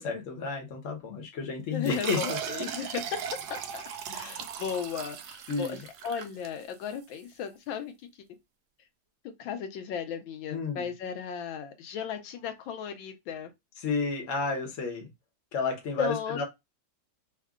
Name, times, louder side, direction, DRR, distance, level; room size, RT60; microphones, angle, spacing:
voice 1, 0.0-2.4 4.1-4.4 5.5-5.8 10.5-10.8 13.8-15.1 15.5-16.4, left 4 dB, 50° left, 1.1 m, -31 dB
voice 2, 1.7-7.9 9.4-13.5 16.0-16.4, left 7 dB, 85° left, 1.5 m, -36 dB
sound 1, 1.8-7.0, right 8 dB, 70° right, 1.0 m, -38 dB
3.6 x 2.3 x 3.5 m
omnidirectional pair, 2.1 m